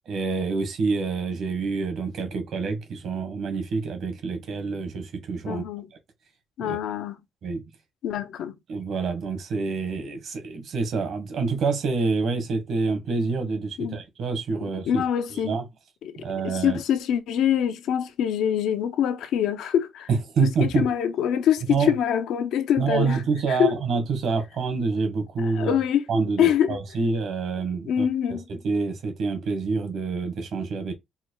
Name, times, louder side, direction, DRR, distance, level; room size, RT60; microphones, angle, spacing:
voice 1, 0.1-5.6 6.6-6.8 7.4-7.6 8.7-15.0 15.4-15.6 16.2-16.8 20.1-20.8 21.7-21.9 22.8-25.8 26.1-28.0 28.3-30.9, right 4 dB, 70° right, 1.7 m, -27 dB
voice 2, 5.5-5.9 6.6-7.2 8.0-8.6 13.8-14.0 14.9-15.5 16.0-16.2 16.4-20.1 20.4-23.2 23.5-23.7 25.4-26.1 26.4-26.8 27.9-28.5, left 9 dB, 80° left, 0.7 m, -24 dB
4.5 x 2.2 x 4.7 m
cardioid pair, 90°, 0 cm